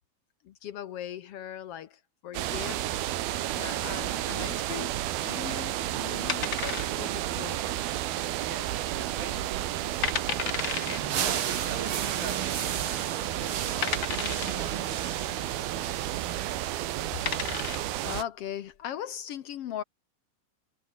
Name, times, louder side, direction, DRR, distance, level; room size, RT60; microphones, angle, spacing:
voice 1, 0.4-5.0 5.2-5.7 6.0-7.6 17.7-19.8, left 10 dB, 80° left, 1.3 m, -39 dB
sound 1, 2.3-18.2, right 14 dB, 90° right, 3.2 m, -32 dB
sound 2, 6.3-7.3 7.5-7.6 8.2-8.6 9.0-9.1 9.7-9.8 10.0-11.0 12.1-12.2 12.9-13.0 13.8-14.7 16.5-16.7 17.1-17.9, left 8 dB, 55° left, 1.4 m, -32 dB
voice 2, 8.4-14.7 15.2-15.7 16.1-16.5, right 5 dB, 70° right, 7.2 m, -45 dB
sound 3, 10.6-16.8, right 9 dB, 50° right, 1.7 m, -34 dB
omnidirectional pair, 4.3 m